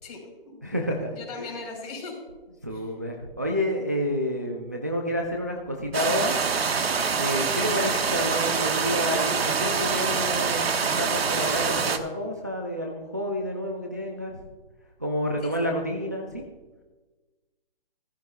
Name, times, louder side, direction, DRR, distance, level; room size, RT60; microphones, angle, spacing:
voice 1, 0.0-0.7 1.1-2.2 2.7-2.9 15.4-15.7, left 3 dB, 40° left, 0 dB, 4.2 m, -39 dB
voice 2, 0.6-1.5 2.6-6.6 7.2-14.4 15.0-16.4, equal, 20° right, 1 dB, 0.4 m, -29 dB
sound 1, 5.9-12.0, right 5 dB, 90° right, 1.3 m, -25 dB
15.5 x 14.5 x 2.3 m, 1.3 s
hypercardioid pair, 175°, 30 cm